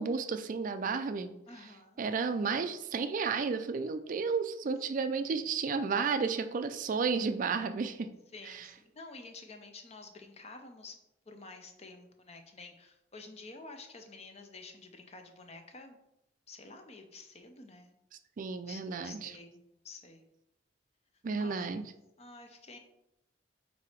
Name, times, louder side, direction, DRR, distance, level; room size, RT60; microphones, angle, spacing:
voice 1, 0.0-1.3 2.0-8.1 8.5-8.7 18.4-19.3 21.2-21.9, right 5 dB, 45° right, 9 dB, 0.4 m, -32 dB
voice 2, 1.5-2.0 5.3-5.4 8.3-11.0 11.3-16.0 16.5-17.9 18.7-20.3 21.4-21.6 22.2-22.8, left 3 dB, 35° left, 5 dB, 0.7 m, -50 dB
4.7 x 4.1 x 5.0 m, 0.88 s
head